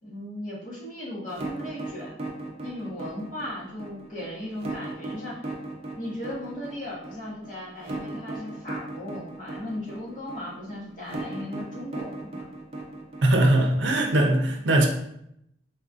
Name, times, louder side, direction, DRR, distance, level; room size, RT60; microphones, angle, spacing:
voice 1, 0.0-2.2 2.6-5.5 5.9-12.4, left 1 dB, 45° left, 1.2 m, -37 dB
sound 1, 1.3-14.2, right 2 dB, 35° right, 0.5 m, -36 dB
voice 2, 13.2-14.9, right 1 dB, 80° right, 0.5 m, -20 dB
4.1 x 2.6 x 2.4 m
head